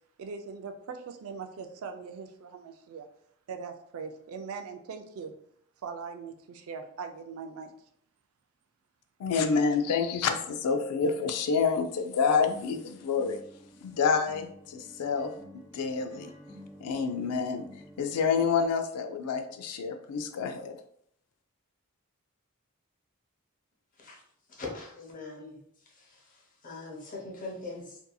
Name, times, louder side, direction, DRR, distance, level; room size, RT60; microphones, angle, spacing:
voice 1, 0.2-3.1 3.5-5.3 5.8-7.7, right 5 dB, 65° right, 6 dB, 0.4 m, -41 dB
voice 2, 9.2-13.4 13.8-15.3 15.7-16.3 16.8-17.6 18.0-20.8, left 5 dB, 90° left, 6 dB, 0.3 m, -28 dB
sound 1, 12.4-18.6, equal, 15° right, 0.7 m, -51 dB
voice 3, 24.5-25.6 25.9-28.0, left 3 dB, 40° left, -2 dB, 0.7 m, -42 dB
2.7 x 2.6 x 2.2 m, 0.67 s
head